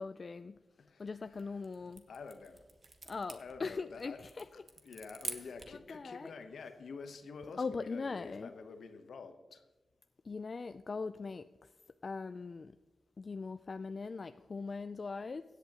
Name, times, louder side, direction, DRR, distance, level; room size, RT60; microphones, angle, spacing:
voice 1, 0.0-0.6 1.0-2.0 3.1-4.4 5.9-6.3 7.6-8.5 10.3-11.5 12.0-12.7 13.2-15.4, left 4 dB, 55° left, 11 dB, 0.3 m, -40 dB
voice 2, 0.8-2.7 3.4-4.2 4.5-9.6, left 4 dB, 75° left, 8 dB, 1.0 m, -49 dB
sound 1, 1.2-5.9, right 3 dB, 50° right, 1.2 m, -48 dB
16.5 x 8.1 x 2.9 m, 1.2 s
supercardioid pair, 45°, 0 cm